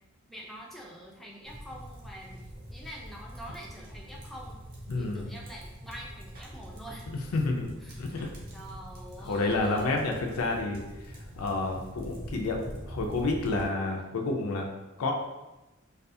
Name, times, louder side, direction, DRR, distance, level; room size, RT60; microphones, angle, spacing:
voice 1, 0.3-2.4 2.7-4.6 5.0-7.1 7.8-8.0 8.5-10.0, equal, ahead, -3 dB, 0.3 m, -45 dB
sound 1, 1.4-13.7, equal, 45° right, 0.6 m, -44 dB
voice 2, 4.9-5.3 7.3-7.7 8.0-8.3 9.2-10.8 11.1-14.7 15.0-15.1, left 2 dB, 85° left, 1 dB, 0.4 m, -29 dB
2.4 x 2.3 x 2.6 m, 1.0 s
head